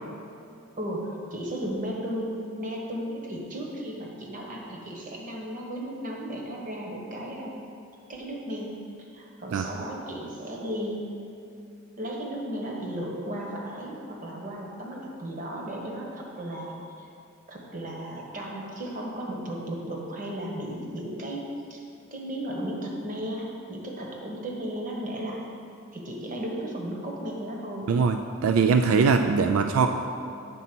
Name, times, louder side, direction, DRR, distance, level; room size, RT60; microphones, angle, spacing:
voice 1, 0.8-7.6 8.1-8.8 9.1-11.2 12.0-17.1 17.5-21.8 22.1-25.5 25.9-27.9 29.4-29.8, equal, 40° right, -1 dB, 1.1 m, -35 dB
voice 2, 28.4-29.9, right 5 dB, 80° right, 6 dB, 0.3 m, -21 dB
8.5 x 4.1 x 6.0 m, 2.5 s
head